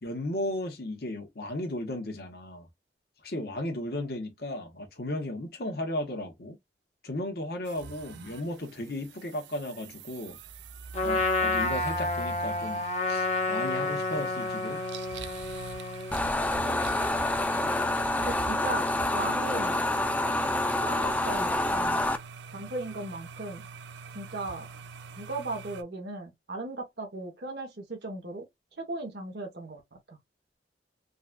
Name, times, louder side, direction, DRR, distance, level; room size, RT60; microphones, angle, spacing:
voice 1, 0.0-2.7 3.2-6.6 7.0-10.4 11.0-14.8, left 1 dB, 60° left, 1.0 m, -35 dB
sound 1, 7.7-25.8, right 5 dB, 80° right, 0.4 m, -44 dB
Trumpet, 10.9-16.2, left 3 dB, 40° left, 0.7 m, -30 dB
sound 2, 16.1-22.2, left 1 dB, 10° left, 0.3 m, -27 dB
voice 2, 16.7-17.0 18.2-19.8 20.8-22.0 22.5-23.7 24.1-24.7 25.2-28.5 28.8-29.8 30.1-30.2, right 2 dB, 65° right, 1.0 m, -37 dB
3.8 x 2.4 x 2.2 m
head